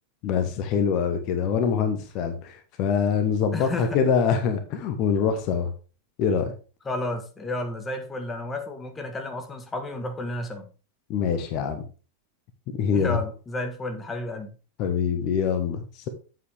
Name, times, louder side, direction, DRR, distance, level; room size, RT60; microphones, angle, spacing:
voice 1, 0.2-5.7 6.2-6.5 11.1-11.8 12.7-13.2 14.8-16.1, left 6 dB, 40° left, 1.3 m, -24 dB
voice 2, 3.5-4.0 6.8-10.7 12.9-14.5, left 2 dB, 15° left, 1.5 m, -32 dB
8.4 x 7.6 x 3.5 m
figure-of-eight pair, 90°, 0 cm